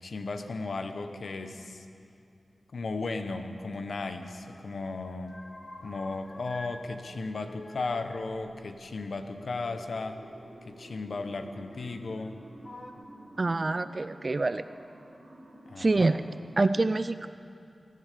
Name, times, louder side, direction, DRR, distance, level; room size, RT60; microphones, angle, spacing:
voice 1, 0.0-1.9 2.7-5.4 5.8-10.2 10.6-12.4 15.7-16.2, left 3 dB, 75° left, 7 dB, 1.0 m, -35 dB
sound 1, 3.7-4.7 4.9-6.8 7.1-9.6 10.6-10.7 11.7-12.3 12.6-12.9, left 2 dB, 45° left, 1.3 m, -48 dB
sound 2, 8.9-16.5, right 1 dB, 85° right, 2.3 m, -51 dB
voice 2, 13.4-14.6 15.8-16.2 16.6-17.3, right 3 dB, 50° right, 12 dB, 0.4 m, -26 dB
19.5 x 10.5 x 6.7 m, 2.5 s
cardioid pair, 50°, 0 cm